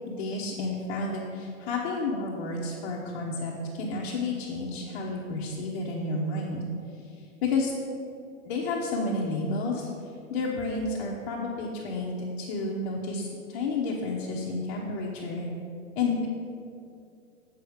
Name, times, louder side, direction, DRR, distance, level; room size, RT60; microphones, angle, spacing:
voice 1, 0.1-6.6 7.4-7.7 8.4-9.9 10.3-15.5 16.0-16.3, left 3 dB, 40° left, -4 dB, 1.0 m, -31 dB
7.7 x 6.4 x 5.0 m, 2.4 s
hypercardioid pair, 155°, 41 cm